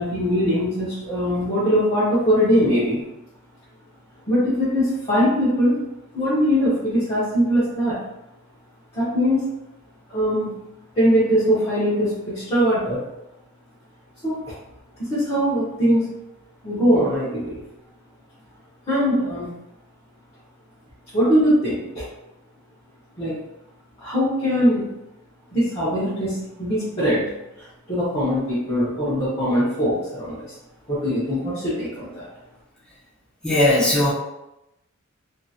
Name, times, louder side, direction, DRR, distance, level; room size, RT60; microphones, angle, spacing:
voice 1, 0.0-3.0 4.3-5.8 6.1-8.0 8.9-9.4 10.1-10.6 10.9-13.0 14.2-14.6 15.0-16.1 16.6-17.6 18.9-19.5 21.1-22.1 23.2-23.4 24.0-24.9 25.5-27.3 27.6-30.5 30.9-32.3, equal, 25° left, -13 dB, 1.0 m, -21 dB
voice 2, 33.4-34.1, left 1 dB, 5° left, -10 dB, 0.7 m, -18 dB
2.9 x 2.6 x 2.4 m, 0.91 s
head